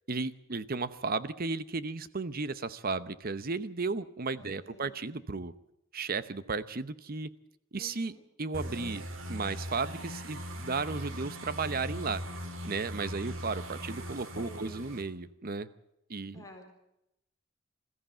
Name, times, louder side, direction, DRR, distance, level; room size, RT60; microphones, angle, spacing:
voice 1, 0.1-5.5 5.9-7.3 7.7-9.0 9.3-12.2 12.6-15.7 16.1-16.4, right 4 dB, 50° right, 15 dB, 0.9 m, -34 dB
voice 2, 4.4-5.0 7.8-8.2 14.4-14.8 16.3-16.7, equal, 15° left, 1 dB, 3.8 m, -50 dB
sound 1, 8.5-15.0, equal, 85° right, 2.3 m, -40 dB
21.5 x 14.0 x 9.0 m, 0.84 s
head